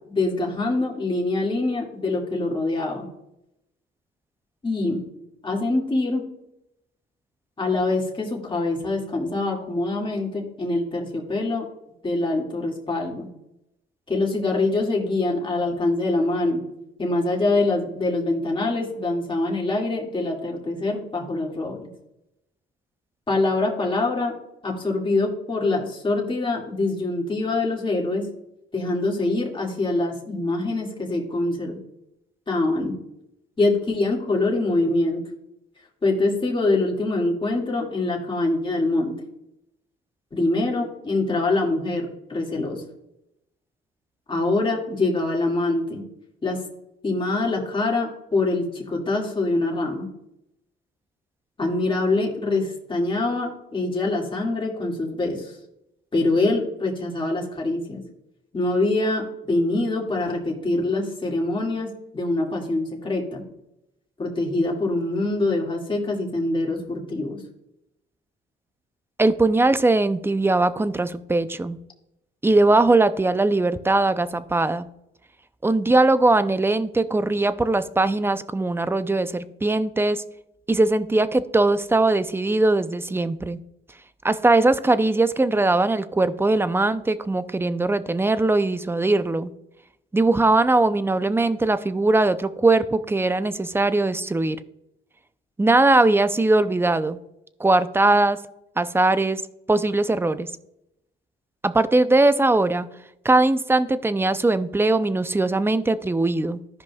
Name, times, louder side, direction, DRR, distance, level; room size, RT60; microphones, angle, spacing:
voice 1, 0.1-3.1 4.6-5.0 5.4-6.2 7.6-11.7 12.0-13.3 14.1-16.6 17.0-21.9 23.3-24.3 24.6-28.3 28.7-31.8 32.5-33.0 33.6-35.2 36.0-39.2 40.3-42.8 44.3-46.0 46.4-46.6 47.0-50.1 51.6-55.6 56.1-58.0 58.5-63.4 64.2-67.4, left 2 dB, 25° left, -1 dB, 2.1 m, -24 dB
voice 2, 69.2-71.8 72.4-74.9 75.6-80.2 80.7-83.6 84.2-89.5 90.1-94.6 95.6-97.2 97.6-98.4 98.8-99.4 99.7-100.5 101.6-102.9 103.2-106.6, right 2 dB, 10° right, 13 dB, 0.5 m, -20 dB
15.0 x 5.2 x 2.3 m, 0.84 s
cardioid pair, 90°, 20 cm